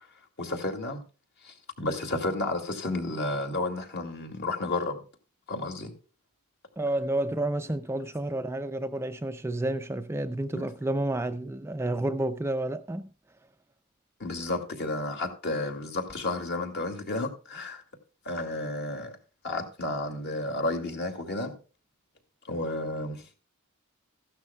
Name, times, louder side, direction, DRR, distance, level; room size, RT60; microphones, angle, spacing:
voice 1, 0.4-1.0 1.4-5.0 5.5-5.9 10.5-10.7 14.2-17.8 18.3-19.1 19.4-21.5 22.5-23.2, left 2 dB, 50° left, 2.4 m, -32 dB
voice 2, 6.8-13.1, right 1 dB, 10° right, 0.4 m, -30 dB
15.0 x 12.0 x 2.3 m
head